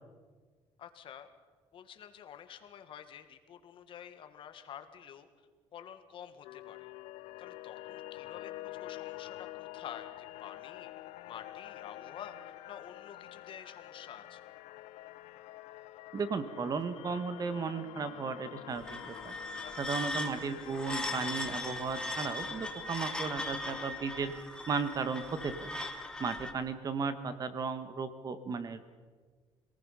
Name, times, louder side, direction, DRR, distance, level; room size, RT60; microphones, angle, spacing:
voice 1, 0.8-1.3 1.7-5.3 5.7-6.9 7.4-10.9 11.3-12.4 12.7-14.4 19.6-20.0, left 9 dB, 55° left, 8 dB, 1.8 m, -49 dB
sound 1, 6.4-24.5, left 16 dB, 85° left, 0.7 m, -48 dB
voice 2, 16.1-19.3 19.8-24.3 24.7-25.7 26.2-28.8, right 5 dB, 35° right, 11 dB, 1.6 m, -35 dB
sound 2, 18.7-26.5, left 2 dB, 10° left, 2.0 m, -39 dB
26.5 x 19.0 x 5.8 m, 1.5 s
cardioid pair, 120°, 11 cm